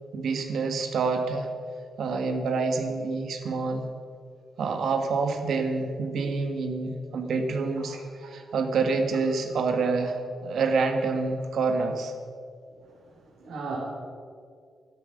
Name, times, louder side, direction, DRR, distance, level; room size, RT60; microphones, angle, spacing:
voice 1, 0.1-1.5 2.0-3.9 4.6-8.0 8.2-12.1, right 4 dB, 65° right, 5 dB, 1.6 m, -27 dB
voice 2, 7.8-8.3 13.3-13.8, right 4 dB, 85° right, -4 dB, 3.2 m, -38 dB
13.0 x 12.5 x 6.6 m, 2.2 s
wide cardioid pair, 155°, 0 cm